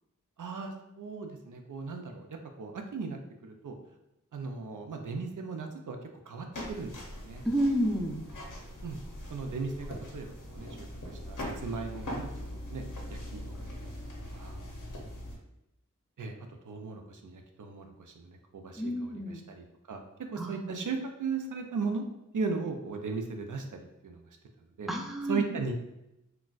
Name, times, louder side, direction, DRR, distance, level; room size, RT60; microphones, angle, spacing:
voice 1, 0.4-3.8 4.3-6.0 6.3-7.4 8.8-9.0 9.3-9.9 10.1-12.8 13.1-13.8 14.3-14.6 16.2-16.4 16.6-20.0 20.3-22.1 22.3-24.2 24.8-24.9 25.3-25.7, right 4 dB, 75° right, 4 dB, 0.5 m, -37 dB
sound 1, 6.5-15.4, left 1 dB, 85° left, 0.7 m, -41 dB
voice 2, 7.5-8.2 18.8-19.4 20.4-20.5 24.9-25.4, equal, ahead, 0 dB, 0.5 m, -29 dB
3.9 x 2.2 x 2.4 m, 0.86 s
wide cardioid pair, 50°, 31 cm